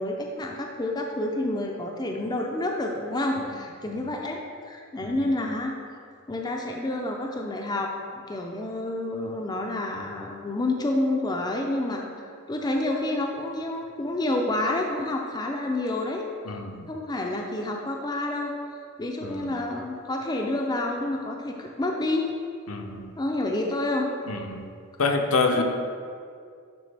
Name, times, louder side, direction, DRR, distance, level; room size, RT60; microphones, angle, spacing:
voice 1, 0.0-5.7 6.3-16.3 16.9-18.5 19.0-22.3 23.2-24.1 25.6-25.7, left 2 dB, 20° left, 1 dB, 0.4 m, -29 dB
voice 2, 16.5-16.9 19.2-19.5 22.7-23.1 24.3-24.7 25.0-25.6, left 3 dB, 65° left, 4 dB, 0.6 m, -27 dB
10.0 x 3.7 x 3.3 m, 2.2 s
head